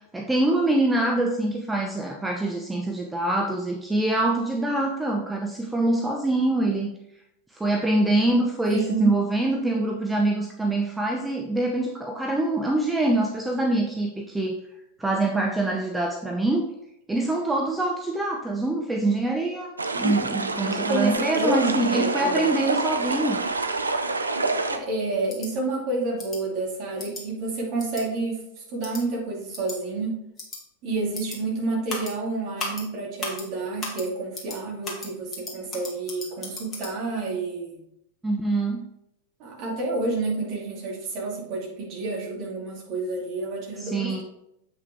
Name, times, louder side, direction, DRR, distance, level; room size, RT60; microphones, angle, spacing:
voice 1, 0.1-6.9 7.5-14.5 15.0-16.6 17.1-23.4 38.2-38.8 43.8-44.2, right 2 dB, 5° right, 1 dB, 0.7 m, -24 dB
voice 2, 8.7-9.1 20.7-22.5 24.7-28.4 28.7-30.2 30.8-37.8 39.4-44.1, right 3 dB, 40° right, -2 dB, 2.5 m, -29 dB
sound 1, 19.8-24.8, right 3 dB, 80° right, 0.5 m, -27 dB
sound 2, 25.3-25.5 26.2-26.4 27.0-27.2 27.8-28.0 28.8-29.0 29.5-29.8 30.4-30.6 31.1-31.4 31.9-32.1 32.6-32.8 33.2-33.4 33.8-34.0 34.3-34.6 34.8-36.9, left 3 dB, 25° left, 2.0 m, -35 dB
7.9 x 5.6 x 3.5 m, 0.81 s
figure-of-eight pair, 90°, 0 cm